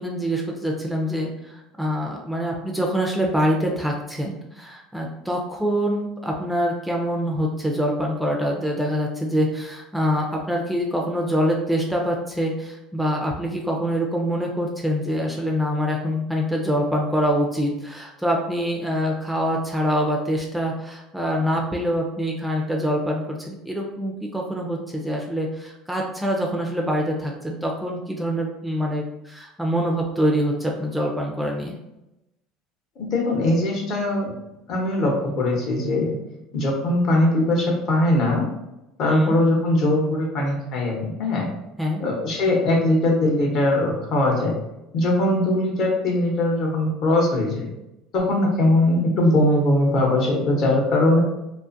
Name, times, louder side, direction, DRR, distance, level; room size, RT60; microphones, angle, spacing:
voice 1, 0.0-31.8 39.1-39.4 41.8-42.0, equal, 5° right, -1 dB, 0.4 m, -25 dB
voice 2, 33.0-34.3 34.7-36.1 36.5-38.5 39.0-41.5 42.0-44.5 44.9-47.7 48.1-51.2, left 1 dB, 50° left, 0 dB, 0.8 m, -21 dB
2.4 x 2.4 x 2.5 m, 0.90 s
supercardioid pair, 125°, 0 cm